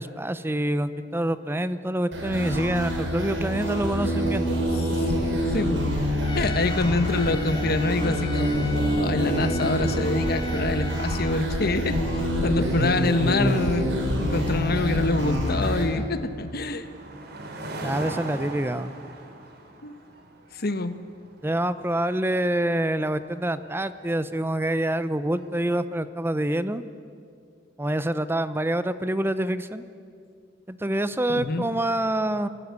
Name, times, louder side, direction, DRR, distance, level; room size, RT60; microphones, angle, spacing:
voice 1, 0.0-4.5 17.8-18.9 21.4-26.8 27.8-29.8 30.7-32.5, right 1 dB, 10° right, 13 dB, 0.7 m, -26 dB
sound 1, 2.1-15.8, equal, 85° right, 5.8 m, -26 dB
Trumpet, 6.2-11.5, left 4 dB, 25° left, 1.4 m, -39 dB
voice 2, 6.3-8.5 9.0-16.9 19.8-19.9 20.5-21.0 31.3-31.6, left 2 dB, 55° left, 10 dB, 1.3 m, -26 dB
sound 2, 15.7-25.6, right 2 dB, 60° right, 3.1 m, -42 dB
28.5 x 17.5 x 8.2 m, 2.3 s
head